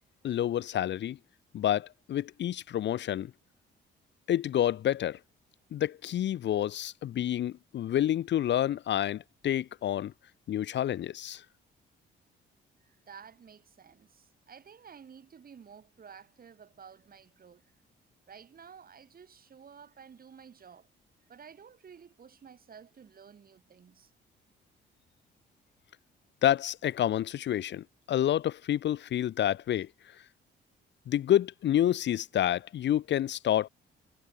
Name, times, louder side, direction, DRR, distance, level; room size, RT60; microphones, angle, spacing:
voice 1, 0.2-1.2 1.5-3.3 4.3-5.2 5.7-10.1 10.5-11.4 26.4-30.2 31.1-33.7, left 11 dB, 65° left, 0.9 m, -29 dB
voice 2, 12.8-17.7 18.3-20.9 21.3-24.1, right 7 dB, 50° right, 5.8 m, -52 dB
cardioid pair, 90°, 20 cm